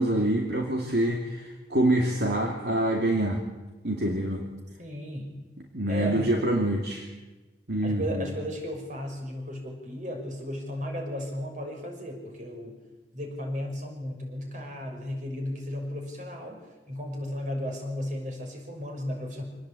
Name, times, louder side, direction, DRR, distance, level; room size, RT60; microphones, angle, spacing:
voice 1, 0.0-3.4 3.8-4.5 5.7-7.1 7.7-8.3, right 1 dB, 60° right, 1 dB, 2.8 m, -26 dB
voice 2, 4.8-5.4 5.9-6.3 7.8-12.8 13.1-19.4, equal, 45° right, 3 dB, 6.0 m, -35 dB
26.0 x 19.5 x 8.6 m, 1.2 s
head